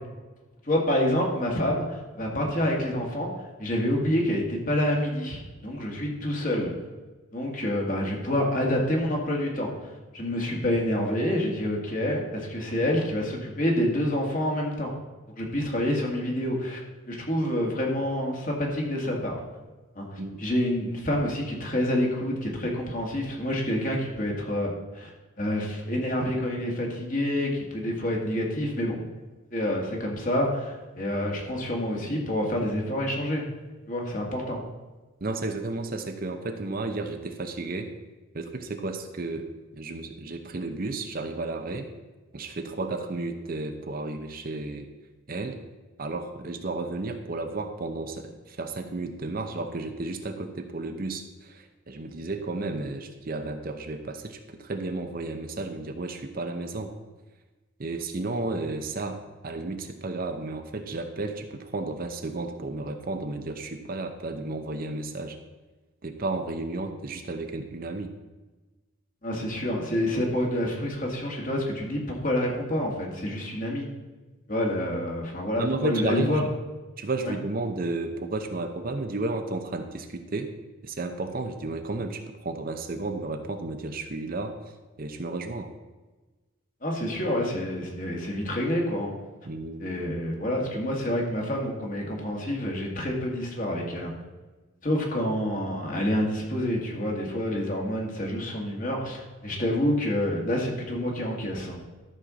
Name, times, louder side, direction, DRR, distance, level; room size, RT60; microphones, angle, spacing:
voice 1, 0.6-6.7 7.3-14.9 15.3-16.8 17.1-19.4 20.0-25.1 25.4-29.0 29.5-33.4 33.9-34.6 69.2-73.9 74.5-76.4 77.2-77.4 86.8-89.1 89.8-94.1 94.8-101.8, left 1 dB, 40° left, -1 dB, 2.0 m, -28 dB
voice 2, 35.2-37.9 38.3-39.5 39.7-41.9 42.3-44.9 45.3-45.6 46.0-56.9 57.8-65.4 66.0-68.1 75.6-76.5 77.0-80.5 80.8-84.6 85.0-85.7 89.5-89.9, right 2 dB, 45° right, 6 dB, 0.8 m, -32 dB
13.0 x 4.4 x 6.3 m, 1.2 s
head